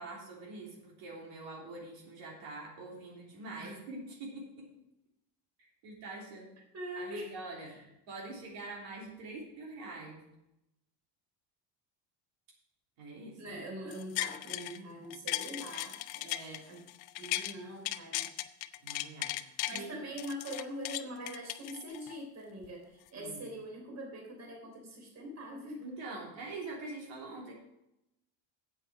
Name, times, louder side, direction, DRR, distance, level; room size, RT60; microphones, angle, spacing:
voice 1, 0.0-4.7 5.8-6.5 6.9-7.8 8.1-10.2 13.0-13.6 16.2-16.6 18.8-19.9 23.1-23.4 25.8-27.5, right 2 dB, 65° right, -3 dB, 3.4 m, -45 dB
voice 2, 6.7-7.4 7.6-7.8 13.4-16.3 16.6-16.8 17.2-18.3 19.7-26.2, equal, 35° right, 0 dB, 3.5 m, -43 dB
sound 1, 13.9-14.8 15.1-17.5 17.8-19.8 20.2-22.2 22.6-22.7, left 16 dB, 65° left, 0.8 m, -37 dB
9.0 x 8.2 x 6.1 m, 0.88 s
cardioid pair, 135°, 48 cm